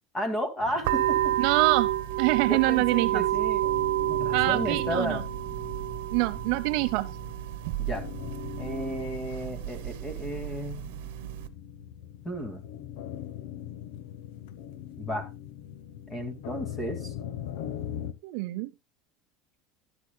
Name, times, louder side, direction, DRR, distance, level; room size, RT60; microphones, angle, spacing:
voice 1, 0.1-1.4 2.5-3.6 4.1-5.2 7.8-8.0 8.6-10.9 12.2-12.6 15.0-15.2 16.1-17.1, equal, 10° left, 7 dB, 2.1 m, -33 dB
sound 1, 0.6-18.1, left 11 dB, 70° left, 0.9 m, -42 dB
sound 2, 0.8-11.5, right 13 dB, 80° right, 1.0 m, -30 dB
voice 2, 1.4-1.9 2.2-3.3 4.3-5.2 6.1-7.1 18.2-18.7, right 20 dB, 55° right, 12 dB, 0.7 m, -25 dB
13.0 x 11.5 x 2.2 m, 0.25 s
cardioid pair, 175°, 0 cm